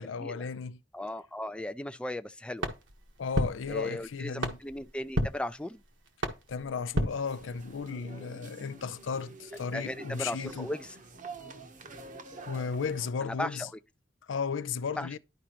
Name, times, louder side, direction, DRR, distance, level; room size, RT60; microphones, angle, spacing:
voice 1, 0.0-0.8 3.2-4.6 6.5-10.7 12.4-13.7 14.3-15.2, left 5 dB, 80° left, 0.5 m, -34 dB
voice 2, 0.9-2.7 3.7-5.8 9.7-10.9 13.2-13.7 15.0-15.1, left 1 dB, 5° left, 0.3 m, -37 dB
sound 1, 2.6-7.9, right 1 dB, 75° right, 1.5 m, -35 dB
sound 2, 7.1-13.1, right 3 dB, 40° right, 0.9 m, -47 dB
11.5 x 4.9 x 3.0 m
head